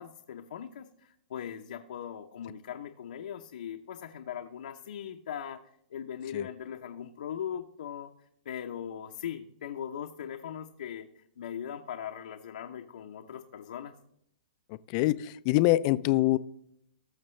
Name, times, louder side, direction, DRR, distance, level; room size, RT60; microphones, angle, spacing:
voice 1, 0.0-5.6 5.9-8.1 8.4-13.9, left 9 dB, 70° left, 3 dB, 0.8 m, -40 dB
voice 2, 14.7-16.4, left 17 dB, 30° left, 15 dB, 0.4 m, -25 dB
19.5 x 6.5 x 3.2 m, 0.74 s
hypercardioid pair, 160°, 5 cm